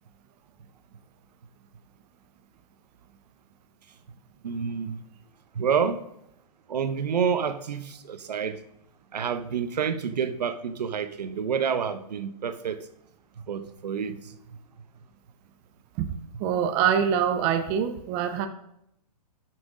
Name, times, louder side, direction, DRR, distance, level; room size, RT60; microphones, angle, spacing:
voice 1, 4.4-5.0 5.5-6.0 6.7-8.6 9.1-12.9 13.5-14.2, right 7 dB, 80° right, 1.0 m, -28 dB
voice 2, 16.4-18.5, right 8 dB, 20° right, 0.4 m, -24 dB
11.5 x 6.1 x 3.8 m
hypercardioid pair, 155°, 20 cm